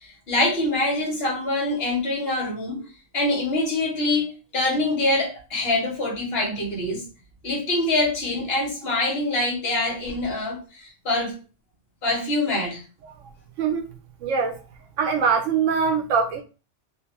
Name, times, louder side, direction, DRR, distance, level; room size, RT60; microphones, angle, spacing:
voice 1, 0.0-2.8 3.1-7.0 7.4-11.3 12.0-12.8, left 2 dB, 55° left, -1 dB, 1.2 m, -25 dB
voice 2, 14.2-14.6 15.0-16.4, right 6 dB, 85° right, 5 dB, 1.0 m, -22 dB
2.8 x 2.1 x 2.9 m, 0.34 s
omnidirectional pair, 1.3 m